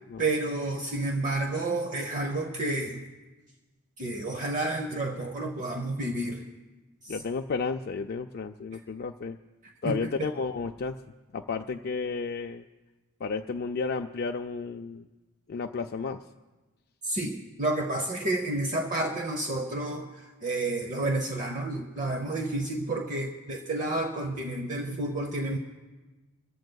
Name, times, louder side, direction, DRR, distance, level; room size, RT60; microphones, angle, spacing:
voice 1, 0.2-3.1 4.0-6.5 7.0-7.1 9.8-10.3 17.0-25.6, right 2 dB, 40° right, 4 dB, 0.8 m, -30 dB
voice 2, 7.1-9.4 9.8-11.0 11.3-12.7 13.2-15.1 15.5-16.2, left 4 dB, 50° left, 4 dB, 0.4 m, -32 dB
26.0 x 14.5 x 2.3 m, 1.2 s
head